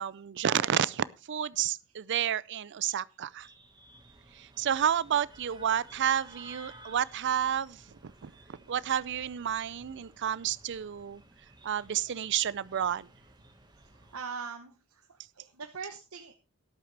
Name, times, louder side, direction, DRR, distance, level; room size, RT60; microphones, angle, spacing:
voice 1, 0.0-3.5 4.4-11.2 11.6-13.1, right 9 dB, 55° right, 0.5 m, -30 dB
sound 1, 3.1-14.2, right 2 dB, 20° right, 1.6 m, -55 dB
voice 2, 14.1-16.3, right 5 dB, 80° right, 1.0 m, -42 dB
13.0 x 11.0 x 3.3 m
head